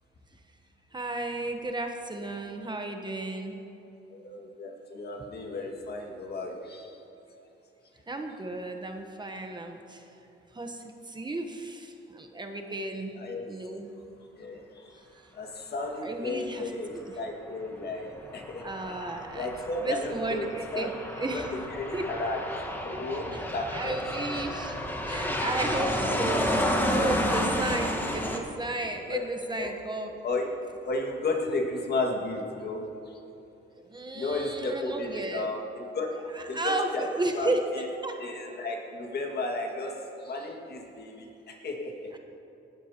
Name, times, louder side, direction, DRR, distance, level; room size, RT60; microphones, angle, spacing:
voice 1, 0.9-3.6 8.1-10.0 10.5-13.2 13.5-13.9 15.1-15.3 16.0-17.0 18.6-19.5 19.8-21.5 21.9-22.1 23.3-23.4 23.7-24.8 25.1-26.5 26.9-30.2 33.8-35.5 36.3-37.7 38.0-38.2, right 2 dB, 20° right, 4 dB, 1.0 m, -33 dB
voice 2, 4.1-7.0 13.2-13.5 14.4-15.0 15.3-20.9 21.3-21.4 21.7-22.4 22.8-23.9 26.0-26.2 28.3-28.4 29.1-29.3 29.6-29.7 30.2-30.6 30.9-33.2 34.1-36.2 36.5-37.1 37.4-37.8 38.2-42.2, left 2 dB, 55° left, 1 dB, 2.0 m, -34 dB
Aircraft, 18.2-28.4, equal, 10° left, 1.4 m, -31 dB
19.0 x 12.5 x 2.9 m, 2.8 s
cardioid pair, 90°, 20 cm